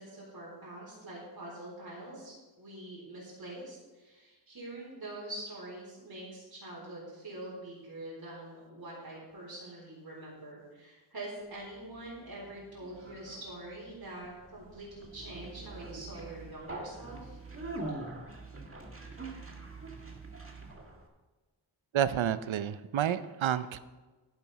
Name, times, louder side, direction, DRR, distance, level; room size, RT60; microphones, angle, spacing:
voice 1, 0.0-17.4, right 1 dB, 50° right, -6 dB, 4.2 m, -45 dB
Conversation, 11.6-21.1, right 2 dB, 30° right, 1.8 m, -44 dB
voice 2, 21.9-23.8, right 10 dB, 85° right, 14 dB, 0.7 m, -29 dB
10.5 x 10.5 x 4.1 m, 1.2 s
wide cardioid pair, 75°, 46 cm